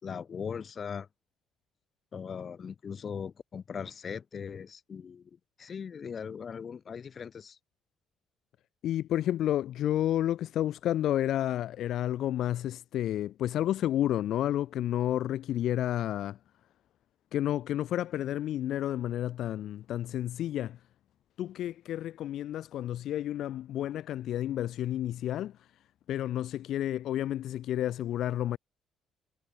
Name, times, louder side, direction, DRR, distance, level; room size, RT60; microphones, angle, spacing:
voice 1, 0.0-1.1 2.1-5.3 5.6-7.6, left 6 dB, 35° left, 2.3 m, -39 dB
voice 2, 8.8-16.4 17.3-20.8 21.4-25.7 26.1-28.6, left 12 dB, 65° left, 1.0 m, -31 dB
cardioid pair, 165°, 0 cm